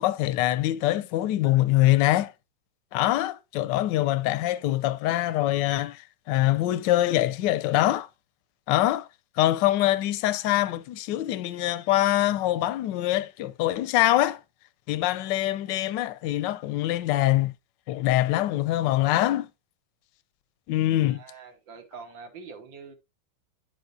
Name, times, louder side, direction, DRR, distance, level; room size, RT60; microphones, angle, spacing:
voice 1, 0.0-2.3 2.9-6.0 6.3-8.1 8.7-9.1 9.4-14.4 14.9-17.5 17.9-19.5 20.7-21.2, left 15 dB, 75° left, 1.2 m, -24 dB
voice 2, 21.0-23.0, right 5 dB, 70° right, 2.1 m, -44 dB
10.5 x 5.2 x 2.6 m
omnidirectional pair, 2.2 m